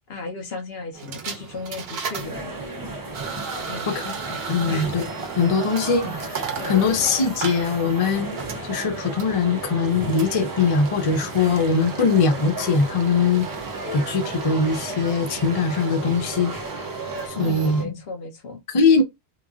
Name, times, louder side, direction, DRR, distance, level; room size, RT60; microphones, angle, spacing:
voice 1, 0.1-2.5 3.6-4.1 4.7-5.0 5.3-5.5 6.5-7.0 17.3-18.6, left 3 dB, 65° left, 1.1 m, -35 dB
sound 1, 0.9-17.9, right 6 dB, 70° right, 0.9 m, -35 dB
sound 2, 2.0-17.3, right 2 dB, 25° right, 0.5 m, -35 dB
voice 2, 3.9-5.1 5.4-8.3 8.7-13.5 13.9-16.5 17.3-17.9 18.7-19.0, left 4 dB, 40° left, 0.5 m, -21 dB
3.0 x 2.5 x 2.4 m
omnidirectional pair, 1.1 m